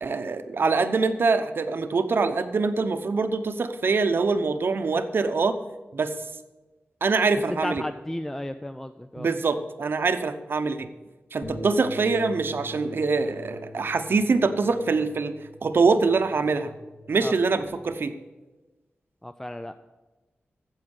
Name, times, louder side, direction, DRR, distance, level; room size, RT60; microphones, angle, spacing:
voice 1, 0.0-5.6 5.9-6.1 7.0-7.8 9.2-10.9 11.3-15.3 15.6-16.7 17.1-18.1, right 4 dB, 60° right, 9 dB, 0.8 m, -24 dB
voice 2, 7.5-9.3 17.2-17.3 19.2-19.7, left 1 dB, 10° left, 9 dB, 0.4 m, -33 dB
Bass guitar, 11.4-17.7, left 1 dB, 45° left, 3.3 m, -43 dB
8.8 x 7.4 x 7.9 m, 1.2 s
wide cardioid pair, 90°, 4 cm